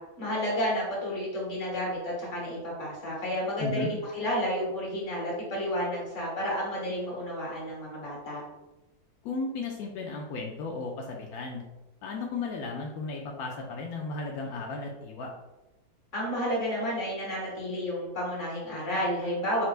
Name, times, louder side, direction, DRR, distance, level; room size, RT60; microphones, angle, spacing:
voice 1, 0.2-8.4 16.1-19.6, equal, 40° left, -5 dB, 1.8 m, -31 dB
voice 2, 3.6-3.9 9.2-11.6 12.0-15.3, left 3 dB, 75° left, 0 dB, 0.9 m, -35 dB
4.4 x 4.4 x 2.4 m, 1.1 s
omnidirectional pair, 2.1 m